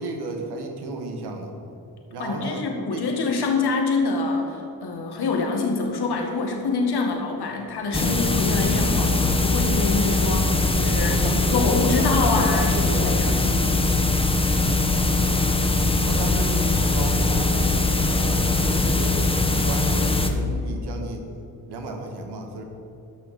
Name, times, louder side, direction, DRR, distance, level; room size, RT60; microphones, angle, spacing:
voice 1, 0.0-1.5 2.1-3.1 11.1-13.3 15.7-17.8 18.1-21.3 21.7-22.6, right 2 dB, 90° right, 3 dB, 1.6 m, -33 dB
voice 2, 2.2-11.2 11.5-13.7, left 3 dB, 80° left, 1 dB, 2.0 m, -25 dB
sound 1, 7.9-20.3, left 2 dB, 15° left, 1.4 m, -21 dB
13.0 x 6.4 x 6.7 m, 2.8 s
cardioid pair, 60°, 39 cm